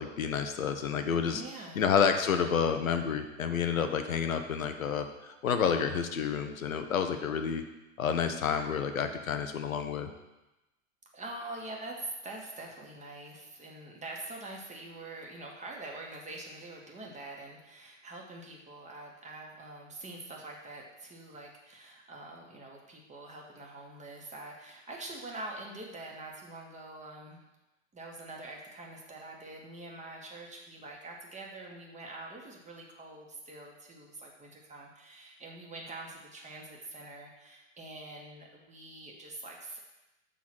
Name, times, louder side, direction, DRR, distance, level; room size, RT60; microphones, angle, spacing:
voice 1, 0.0-1.4 1.7-7.6 8.0-10.1, left 7 dB, 90° left, 7 dB, 0.9 m, -29 dB
voice 2, 1.3-2.0 11.1-27.4 27.9-39.8, right 2 dB, 20° right, -1 dB, 1.5 m, -45 dB
7.1 x 3.8 x 6.1 m, 0.99 s
hypercardioid pair, 105°, 40 cm